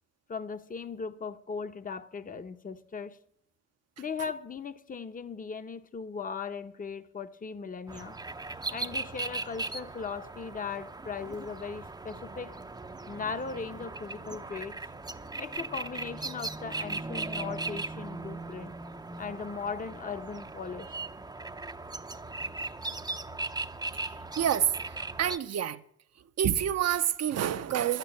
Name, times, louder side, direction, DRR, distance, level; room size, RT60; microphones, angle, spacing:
voice 1, 0.3-3.2 4.0-8.2 8.7-12.5 13.1-14.7 15.4-18.7 19.2-21.0, left 5 dB, 25° left, 0.9 m, -38 dB
sound 1, 7.9-25.4, right 3 dB, 15° right, 0.7 m, -38 dB
voice 2, 23.9-25.8 26.4-28.0, right 10 dB, 60° right, 0.8 m, -28 dB
11.5 x 9.1 x 8.4 m
cardioid pair, 90°, 30 cm